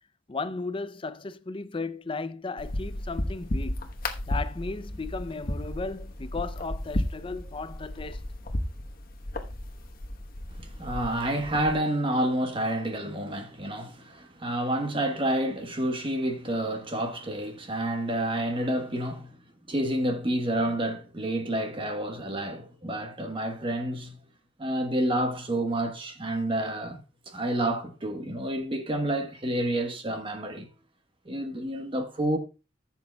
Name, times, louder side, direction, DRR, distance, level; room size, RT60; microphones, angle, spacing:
voice 1, 0.3-3.9 4.3-8.3, left 3 dB, 30° left, 0.5 m, -35 dB
sound 1, 2.6-11.8, left 1 dB, 50° left, 1.1 m, -34 dB
voice 2, 10.8-19.3 19.7-24.2 24.6-27.0 27.3-30.7 31.2-32.4, right 1 dB, 25° right, 1.2 m, -29 dB
15.0 x 7.3 x 2.3 m
head